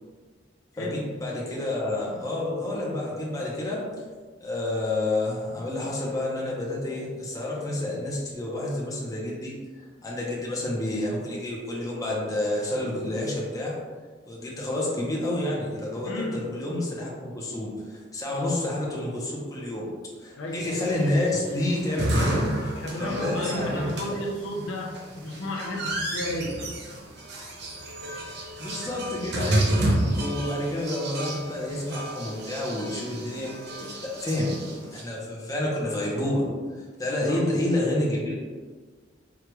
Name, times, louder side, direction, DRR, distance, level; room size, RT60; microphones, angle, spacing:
voice 1, 0.8-3.8 4.4-9.5 10.0-13.7 14.2-19.9 20.2-22.4 22.9-24.2 28.6-33.5 34.0-34.5 34.9-36.5 36.8-38.3, left 1 dB, 20° left, -4 dB, 0.7 m, -29 dB
voice 2, 16.0-16.5 20.3-20.7 22.7-26.6 37.3-37.5, left 1 dB, 70° left, 0 dB, 0.6 m, -33 dB
sound 1, 20.7-35.0, right 1 dB, 60° right, 0.7 m, -30 dB
4.8 x 2.4 x 3.0 m, 1.5 s
head